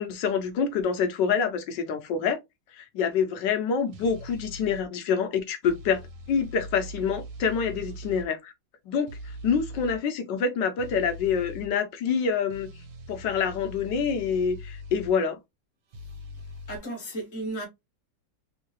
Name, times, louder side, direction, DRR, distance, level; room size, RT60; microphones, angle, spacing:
voice 1, 0.0-2.4 2.7-6.0 6.3-8.5 8.9-12.7 13.1-15.4, left 6 dB, 75° left, 1.3 m, -26 dB
sound 1, 3.9-4.8 5.6-8.3 9.1-10.0 10.8-11.7 12.5-15.1 15.9-16.8, left 1 dB, 80° right, 1.5 m, -41 dB
voice 2, 16.7-17.7, right 2 dB, 50° left, 1.3 m, -34 dB
3.6 x 2.7 x 3.0 m
omnidirectional pair, 2.0 m